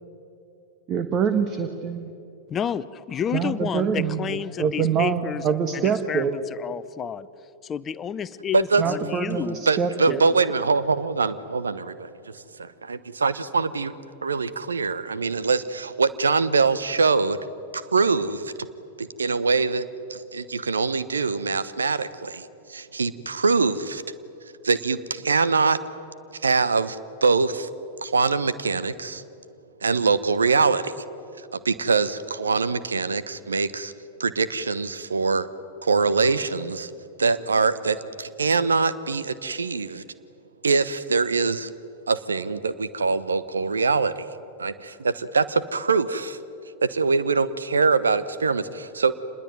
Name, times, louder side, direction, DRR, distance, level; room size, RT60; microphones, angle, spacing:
voice 1, 0.9-2.1 3.3-6.3 8.8-10.2, right 7 dB, 30° right, 9 dB, 1.5 m, -25 dB
voice 2, 2.5-5.4 5.7-7.3 7.6-9.7 10.1-10.3, left 8 dB, 25° left, 16 dB, 0.8 m, -30 dB
voice 3, 8.5-8.8 9.7-13.9 14.2-17.4 17.7-18.5 19.0-24.0 24.6-25.8 26.3-27.7 28.0-29.2 29.8-31.0 31.5-33.9 34.2-35.5 35.8-36.9 37.2-40.0 40.6-41.7 42.1-46.4 46.8-49.1, right 4 dB, 75° right, 15 dB, 1.1 m, -23 dB
27.0 x 21.0 x 9.3 m, 2.6 s
figure-of-eight pair, 90°, 0 cm